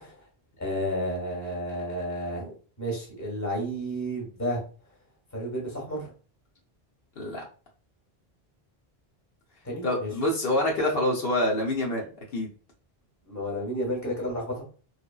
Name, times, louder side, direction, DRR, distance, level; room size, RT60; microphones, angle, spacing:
voice 1, 0.6-4.6 5.3-6.1 9.6-10.1 13.3-14.6, equal, 20° left, -2 dB, 1.0 m, -31 dB
voice 2, 9.8-12.0 12.3-12.5, left 1 dB, 70° left, -1 dB, 0.9 m, -26 dB
3.1 x 2.1 x 2.2 m, 0.37 s
omnidirectional pair, 1.0 m